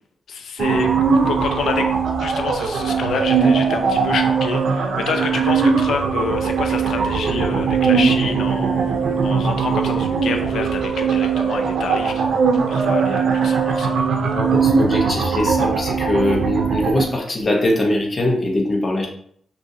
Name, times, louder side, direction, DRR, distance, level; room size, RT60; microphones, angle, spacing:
voice 1, 0.3-1.9 2.2-12.2 12.5-14.0, left 5 dB, 80° left, 5 dB, 0.6 m, -27 dB
sound 1, 0.6-17.0, right 5 dB, 80° right, 0.6 m, -20 dB
voice 2, 14.3-19.1, left 1 dB, 35° left, 0 dB, 1.0 m, -21 dB
6.2 x 2.7 x 2.7 m, 0.64 s
cardioid pair, 105°, 0 cm